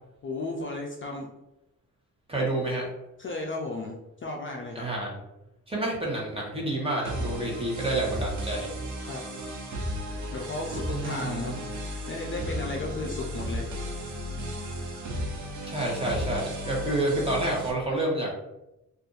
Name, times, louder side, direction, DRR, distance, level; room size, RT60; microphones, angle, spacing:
voice 1, 0.2-1.3 3.2-4.9 9.0-9.2 10.3-13.7, left 2 dB, 40° left, 0 dB, 0.4 m, -34 dB
voice 2, 2.3-2.9 4.7-5.2 5.7-8.7 10.9-11.6 15.6-18.3, right 2 dB, 15° right, -3 dB, 1.0 m, -29 dB
sound 1, 7.0-17.7, equal, 65° right, 0.7 m, -34 dB
2.6 x 2.4 x 3.7 m, 0.92 s
wide cardioid pair, 120°, 33 cm